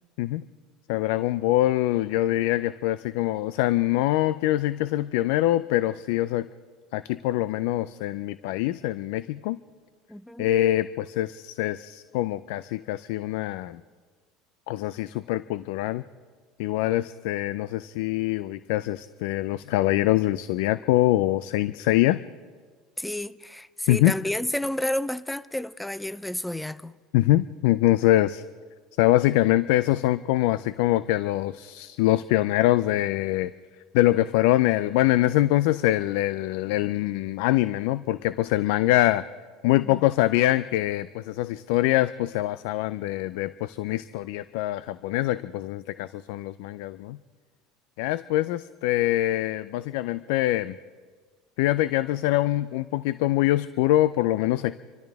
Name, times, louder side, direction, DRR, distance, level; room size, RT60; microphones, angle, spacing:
voice 1, 0.9-6.5 6.9-9.6 10.4-13.8 14.7-16.0 16.6-22.2 23.9-24.1 27.1-28.4 29.0-33.5 33.9-39.3 39.6-47.2 48.0-50.8 51.6-54.7, left 15 dB, 75° left, 0.4 m, -24 dB
voice 2, 10.1-10.5 23.0-27.0, left 1 dB, 5° left, 0.5 m, -31 dB
27.0 x 14.0 x 3.5 m
supercardioid pair, 95°, 0 cm